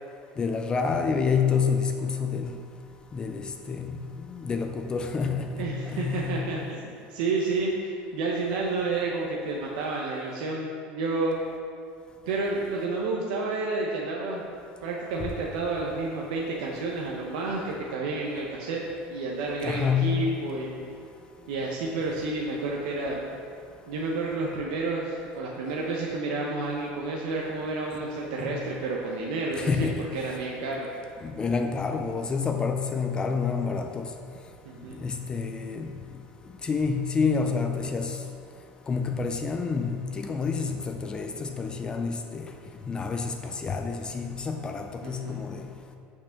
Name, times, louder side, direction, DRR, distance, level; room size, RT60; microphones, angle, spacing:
voice 1, 0.4-2.6 3.1-4.0 4.3-6.5 19.6-20.4 28.4-28.6 29.6-30.1 31.2-34.1 35.0-35.9 36.6-38.2 38.9-42.5 42.9-45.7, left 5 dB, 20° left, 5 dB, 0.4 m, -28 dB
voice 2, 5.6-11.4 12.3-14.4 14.8-18.8 19.1-20.7 21.5-23.2 23.9-30.9 34.6-35.0 45.0-45.4, right 3 dB, 90° right, -2 dB, 0.9 m, -30 dB
6.4 x 6.0 x 5.7 m, 2.4 s
cardioid pair, 145°, 4 cm